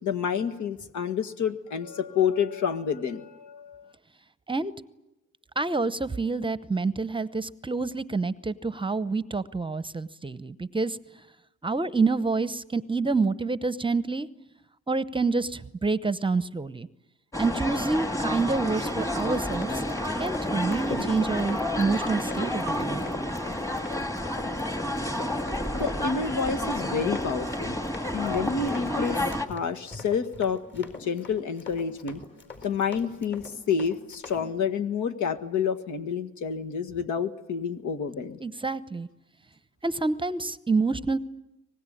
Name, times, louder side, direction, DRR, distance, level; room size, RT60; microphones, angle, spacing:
voice 1, 0.0-3.9 25.7-27.8 28.1-29.2 29.5-32.2 32.6-38.4, left 6 dB, 75° left, 10 dB, 1.8 m, -29 dB
voice 2, 5.6-11.0 11.6-14.3 14.9-16.9 17.4-19.8 20.2-23.0 38.4-39.1 39.8-41.2, right 3 dB, 15° right, 15 dB, 0.8 m, -27 dB
sound 1, 17.3-29.5, left 1 dB, 10° left, 1.8 m, -30 dB
Run, 18.4-34.5, left 3 dB, 35° left, 4.6 m, -42 dB
24.5 x 19.5 x 10.0 m, 0.98 s
cardioid pair, 90°, 30 cm